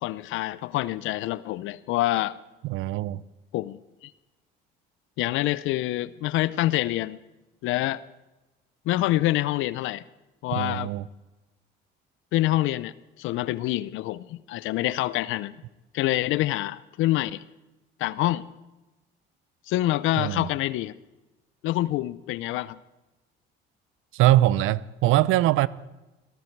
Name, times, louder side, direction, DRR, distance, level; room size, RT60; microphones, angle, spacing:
voice 1, 0.0-2.4 3.5-4.1 5.2-7.2 7.6-8.0 8.9-10.0 10.4-10.9 12.3-15.5 15.9-17.4 18.0-18.5 19.7-20.9 21.6-22.8, left 16 dB, 75° left, 0.6 m, -26 dB
voice 2, 2.6-3.2 10.5-11.1 20.2-20.5 24.1-25.7, right 15 dB, 75° right, 0.7 m, -22 dB
18.5 x 15.5 x 4.6 m
supercardioid pair, 85°, 21 cm